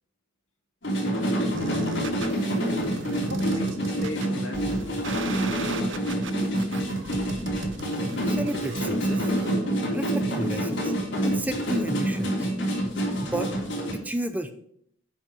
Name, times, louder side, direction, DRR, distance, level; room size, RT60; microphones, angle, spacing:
sound 1, 0.8-13.9, right 1 dB, 60° left, 3.6 m, -27 dB
sound 2, 1.5-9.5, right 3 dB, 65° right, 0.7 m, -38 dB
voice 1, 3.3-6.4, left 1 dB, 90° left, 2 dB, 2.1 m, -36 dB
voice 2, 8.3-9.3 9.9-10.9 11.2-12.5 13.2-13.5 13.9-14.5, right 1 dB, 10° right, 8 dB, 0.5 m, -32 dB
8.7 x 5.6 x 6.3 m, 0.66 s
head